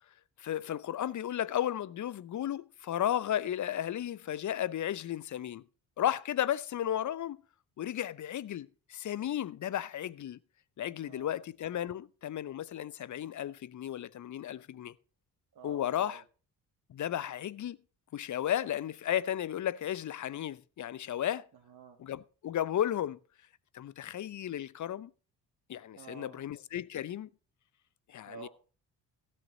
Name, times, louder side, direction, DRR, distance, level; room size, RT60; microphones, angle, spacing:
voice 1, 0.4-5.6 6.0-7.4 7.8-10.4 10.8-14.9 15.6-16.2 16.9-17.8 18.1-21.5 22.0-23.2 23.7-25.1 25.7-27.3 28.1-28.5, left 11 dB, 40° left, 0.7 m, -34 dB
voice 2, 11.0-11.4 15.5-16.2 21.5-22.0 25.9-26.4 28.3-28.5, right 7 dB, 50° right, 1.9 m, -50 dB
16.0 x 6.7 x 5.3 m
hypercardioid pair, 45°, 49 cm